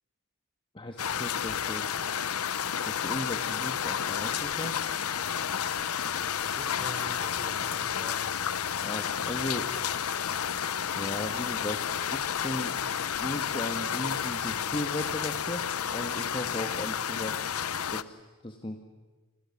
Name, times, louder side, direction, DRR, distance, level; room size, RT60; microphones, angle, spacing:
voice 1, 0.7-2.1 2.8-4.8 8.8-9.7 11.0-11.8 12.1-12.8 13.2-15.7 15.9-17.3 17.9-18.8, left 1 dB, 25° left, 4 dB, 1.5 m, -36 dB
sound 1, 1.0-18.0, left 8 dB, 90° left, 0.8 m, -31 dB
voice 2, 6.2-8.2, right 1 dB, ahead, 3 dB, 4.7 m, -45 dB
sound 2, 9.3-16.1, left 2 dB, 55° left, 4.1 m, -55 dB
28.5 x 26.0 x 7.2 m, 1.2 s
head